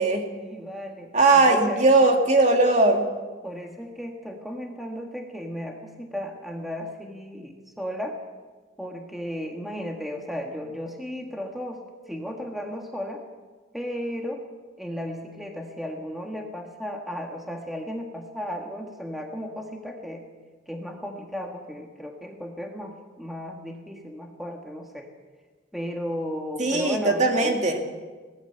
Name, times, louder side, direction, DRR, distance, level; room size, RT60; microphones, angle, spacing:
voice 1, 0.4-1.9 3.4-8.2 8.8-11.8 12.1-13.2 13.7-14.4 14.8-20.2 20.7-25.1 25.7-27.6, equal, ahead, 1 dB, 1.6 m, -34 dB
voice 2, 1.1-3.0 26.6-27.8, right 2 dB, 35° right, 3 dB, 2.3 m, -19 dB
22.5 x 18.0 x 6.9 m, 1.4 s
head